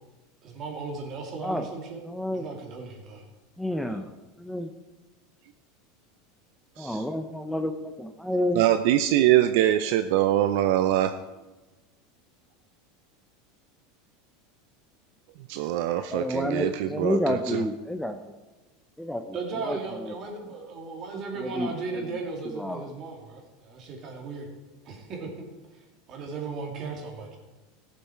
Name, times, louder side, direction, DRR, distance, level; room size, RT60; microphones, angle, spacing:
voice 1, 0.4-2.0 2.3-3.2 19.3-24.5 24.8-25.3 26.1-27.4, right 4 dB, 40° right, 1 dB, 2.5 m, -36 dB
voice 2, 2.0-2.4 3.6-4.1 4.4-4.7 6.8-8.6 16.1-18.2 19.0-19.4 19.6-20.1 21.4-22.2 22.4-22.9, left 1 dB, ahead, 6 dB, 0.6 m, -30 dB
voice 3, 8.5-11.2 15.5-17.6, right 12 dB, 65° right, 10 dB, 0.5 m, -23 dB
13.5 x 7.3 x 4.6 m, 1.1 s
supercardioid pair, 120°, 0 cm